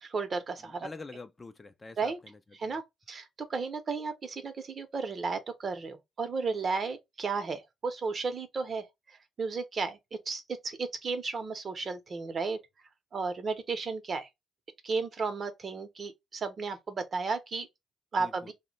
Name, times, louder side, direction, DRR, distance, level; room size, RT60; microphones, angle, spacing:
voice 1, 0.0-0.9 2.0-2.2 2.6-2.8 3.1-8.9 9.4-12.6 13.1-14.3 14.8-17.7 18.1-18.5, right 4 dB, 45° right, 0.7 m, -33 dB
voice 2, 0.8-2.8 18.2-18.5, left 3 dB, 25° left, 0.4 m, -46 dB
2.7 x 2.1 x 3.8 m
cardioid pair, 95°, 0 cm